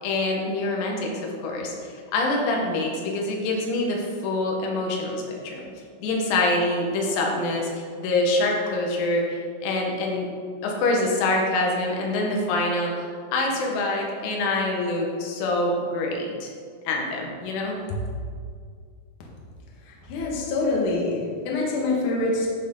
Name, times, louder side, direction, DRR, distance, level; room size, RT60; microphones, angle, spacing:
voice 1, 0.0-5.7 6.0-10.3 10.6-16.5 16.9-17.8, left 2 dB, 85° left, -1 dB, 4.2 m, -25 dB
voice 2, 20.0-22.5, left 2 dB, 60° left, -3 dB, 2.1 m, -25 dB
13.5 x 6.6 x 3.8 m, 2.1 s
omnidirectional pair, 6.0 m